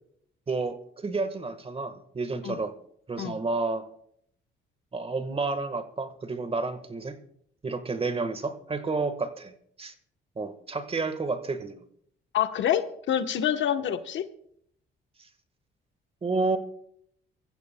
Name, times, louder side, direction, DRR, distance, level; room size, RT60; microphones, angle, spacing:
voice 1, 0.5-2.7 3.1-3.8 4.9-7.2 7.6-9.5 9.8-9.9 10.4-11.7 16.2-16.6, right 3 dB, 30° right, 10 dB, 1.4 m, -30 dB
voice 2, 12.3-14.2, left 10 dB, 70° left, 8 dB, 1.0 m, -27 dB
24.5 x 14.5 x 2.2 m, 0.70 s
cardioid pair, 90°, 20 cm